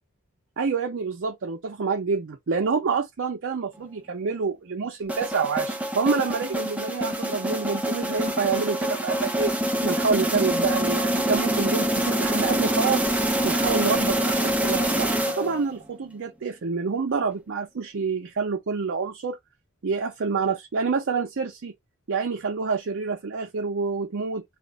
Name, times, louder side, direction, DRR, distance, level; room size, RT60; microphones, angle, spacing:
voice 1, 0.6-9.5 9.8-13.1 13.4-19.4 19.8-21.7 22.1-24.4, right 5 dB, 60° right, 0.5 m, -27 dB
sound 1, 5.1-15.8, right 1 dB, 5° right, 0.5 m, -25 dB
2.4 x 2.0 x 3.8 m
head